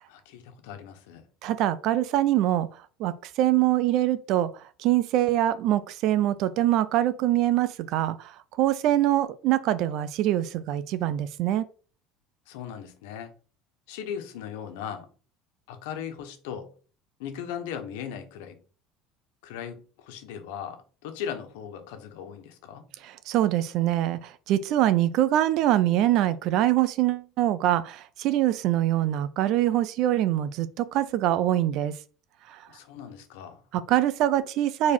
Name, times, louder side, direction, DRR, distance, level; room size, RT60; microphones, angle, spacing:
voice 1, 0.1-1.3 12.5-13.3 13.9-15.1 15.7-16.7 17.2-18.6 19.4-22.8 32.7-33.6, left 8 dB, 85° left, 1.3 m, -38 dB
voice 2, 1.4-2.7 3.0-4.5 4.8-8.3 8.6-11.7 23.0-31.9 32.5-32.6 33.7-34.9, right 13 dB, 45° right, 0.5 m, -24 dB
4.8 x 4.2 x 5.4 m
cardioid pair, 175°, 0 cm